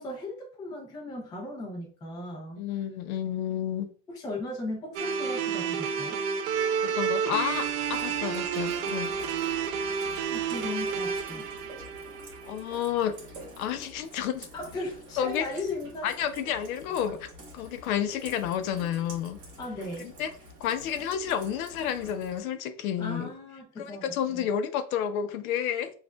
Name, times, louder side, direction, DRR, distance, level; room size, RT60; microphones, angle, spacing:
voice 1, 0.0-2.6 4.1-6.2 10.3-11.5 14.5-16.1 19.6-20.1 23.0-24.5, left 2 dB, 10° left, 0.5 m, -37 dB
voice 2, 2.6-3.9 6.8-9.1 12.5-13.2 13.6-14.5 15.2-15.5 16.0-17.3 17.5-19.4 20.0-20.3 20.6-23.3 23.8-25.9, left 9 dB, 65° left, 0.6 m, -30 dB
sound 1, 5.0-13.1, right 7 dB, 85° right, 0.8 m, -30 dB
Rain, 7.4-22.4, right 1 dB, 40° right, 1.7 m, -48 dB
6.1 x 2.4 x 2.2 m
supercardioid pair, 165°, 46 cm